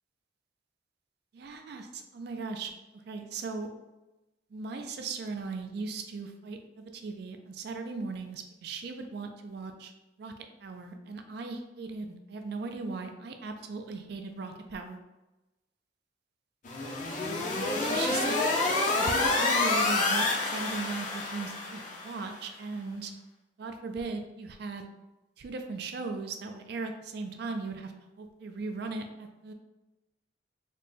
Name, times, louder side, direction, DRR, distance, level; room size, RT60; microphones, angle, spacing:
voice 1, 1.3-2.7 3.0-3.7 4.5-9.9 10.2-10.3 10.6-15.0 17.8-18.3 18.8-23.1 23.6-24.9 25.4-27.9 28.2-29.5, right 4 dB, 55° right, 5 dB, 0.3 m, -38 dB
sound 1, 16.6-22.2, left 3 dB, 40° left, 0.5 m, -28 dB
4.1 x 2.2 x 3.3 m, 1.0 s
head